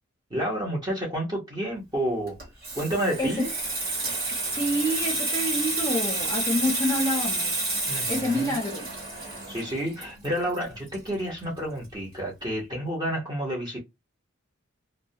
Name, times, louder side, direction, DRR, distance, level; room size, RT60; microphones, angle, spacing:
voice 1, 0.3-2.4 2.7-3.5 7.9-8.6 9.5-13.8, right 1 dB, 20° right, 0.8 m, -30 dB
Water tap faucet / Sink (filling or washing), 2.3-11.6 11.9-12.1, right 2 dB, 45° right, 1.1 m, -30 dB
voice 2, 4.4-7.7 8.0-8.9, left 1 dB, 15° left, 0.6 m, -27 dB
2.2 x 2.1 x 2.7 m
head